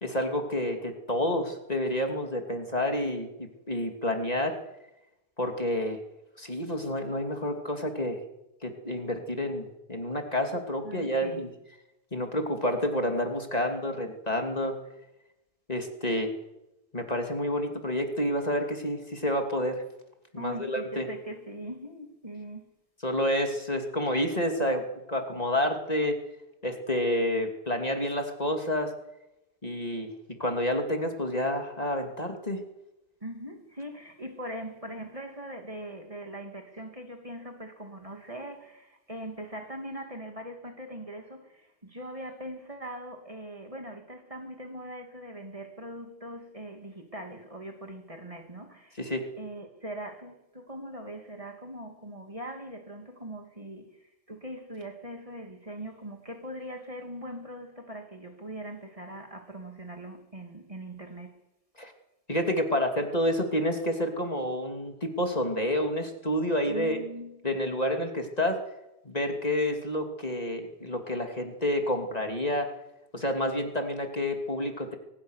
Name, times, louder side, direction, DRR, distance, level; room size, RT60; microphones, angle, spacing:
voice 1, 0.0-4.6 5.4-6.0 6.4-8.2 8.6-11.5 12.1-14.8 15.7-16.3 16.9-19.8 20.3-21.1 23.0-26.2 26.6-28.9 29.6-30.1 30.4-32.6 49.0-49.3 61.8-61.9 62.3-67.0 67.4-68.6 69.0-72.7 73.1-75.0, left 1 dB, 35° left, 3.0 m, -29 dB
voice 2, 10.8-11.5 20.4-22.7 33.2-61.4 66.7-67.4, right 1 dB, 30° right, 2.8 m, -41 dB
24.0 x 20.0 x 6.6 m
omnidirectional pair, 1.2 m